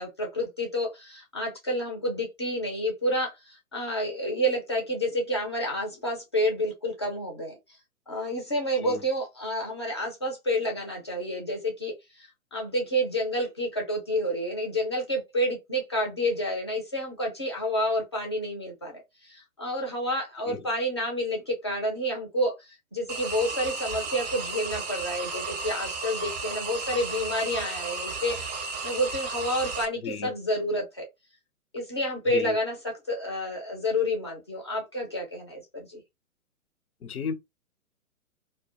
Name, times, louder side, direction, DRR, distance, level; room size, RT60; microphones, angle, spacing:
voice 1, 0.0-3.3 3.7-7.6 8.1-11.9 12.2-19.0 19.3-22.5 22.9-31.1 31.7-36.0, equal, 20° left, 0.3 m, -29 dB
sound 1, 23.1-29.8, right 4 dB, 30° right, 0.5 m, -34 dB
voice 2, 30.0-30.3 32.3-32.6 37.0-37.3, left 6 dB, 80° left, 0.6 m, -34 dB
2.1 x 2.1 x 2.8 m
figure-of-eight pair, 120°, 43 cm